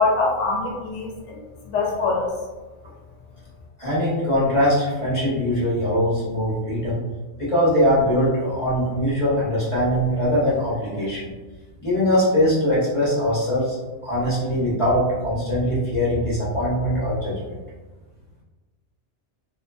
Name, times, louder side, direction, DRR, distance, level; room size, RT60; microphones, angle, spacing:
voice 1, 0.0-1.4 1.7-2.3, left 3 dB, 75° left, -2 dB, 0.9 m, -23 dB
voice 2, 3.8-7.0 7.4-11.3 11.8-13.8 14.0-17.4, equal, 30° left, -9 dB, 0.7 m, -21 dB
2.5 x 2.3 x 2.3 m, 1.2 s
omnidirectional pair, 1.2 m